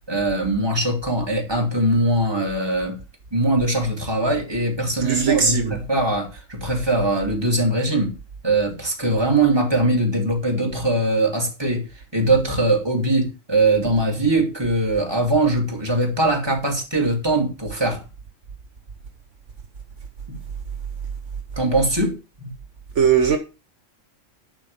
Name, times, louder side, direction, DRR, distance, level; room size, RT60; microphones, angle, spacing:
voice 1, 0.1-3.0 3.3-8.1 8.4-11.8 12.1-18.0 20.3-20.4 21.6-22.5, right 2 dB, 20° right, 2.9 m, -21 dB
voice 2, 5.0-5.7 23.0-23.4, right 6 dB, 70° right, 1.5 m, -19 dB
11.5 x 4.4 x 7.1 m
omnidirectional pair, 1.3 m